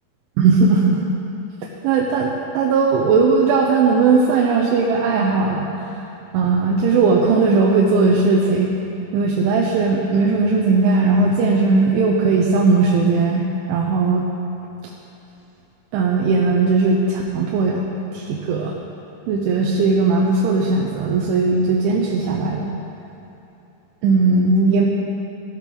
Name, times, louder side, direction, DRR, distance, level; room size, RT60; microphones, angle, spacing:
voice 1, 0.4-1.0 1.8-5.9 6.3-8.7 9.1-14.2 15.9-17.8 18.1-18.7 19.3-22.7 24.0-24.9, right 4 dB, 85° right, -2 dB, 3.3 m, -18 dB
17.0 x 12.0 x 3.9 m, 2.8 s
omnidirectional pair, 5.4 m